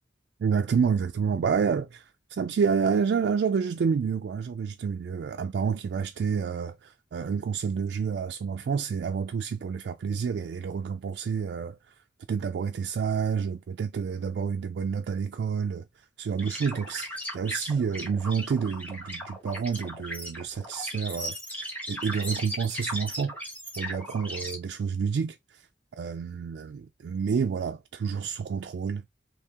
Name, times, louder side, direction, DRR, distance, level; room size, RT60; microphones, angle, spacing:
voice 1, 0.4-11.9 12.3-15.9 16.2-23.3 23.8-25.7 26.0-29.0, right 6 dB, 70° right, 0.3 m, -29 dB
sound 1, 16.4-24.6, equal, 10° left, 1.0 m, -37 dB
3.5 x 2.7 x 2.8 m
head